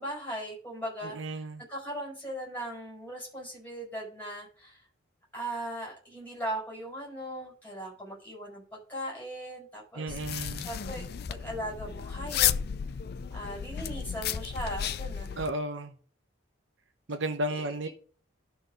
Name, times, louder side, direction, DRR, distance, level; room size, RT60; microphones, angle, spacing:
voice 1, 0.0-1.4 1.7-4.8 5.3-10.2 10.6-12.5 13.3-15.5 17.5-17.9, right 1 dB, 10° left, -3 dB, 5.8 m, -39 dB
voice 2, 1.1-1.6 10.0-10.7 15.4-15.9 17.1-17.9, right 1 dB, 60° right, 8 dB, 0.8 m, -33 dB
sound 1, 10.1-15.5, left 9 dB, 50° left, 0.4 m, -33 dB
12.0 x 4.3 x 5.3 m, 0.41 s
head